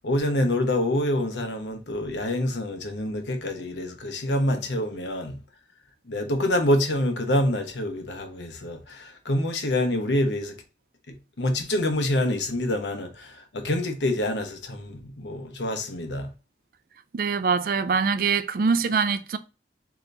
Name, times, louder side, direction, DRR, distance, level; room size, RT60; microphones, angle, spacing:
voice 1, 0.0-5.4 6.0-10.6 11.1-16.3, left 1 dB, 85° left, 0.9 m, -26 dB
voice 2, 17.1-19.4, right 5 dB, 50° right, 0.4 m, -23 dB
3.9 x 2.9 x 3.2 m
head